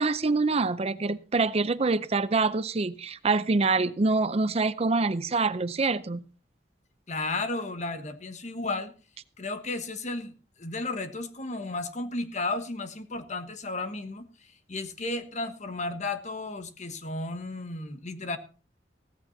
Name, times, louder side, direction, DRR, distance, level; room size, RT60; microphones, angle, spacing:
voice 1, 0.0-6.3, right 3 dB, 35° right, 0.5 m, -25 dB
voice 2, 7.1-8.9 9.4-10.3 10.6-18.4, left 2 dB, 45° left, 1.3 m, -33 dB
16.0 x 15.0 x 2.7 m
head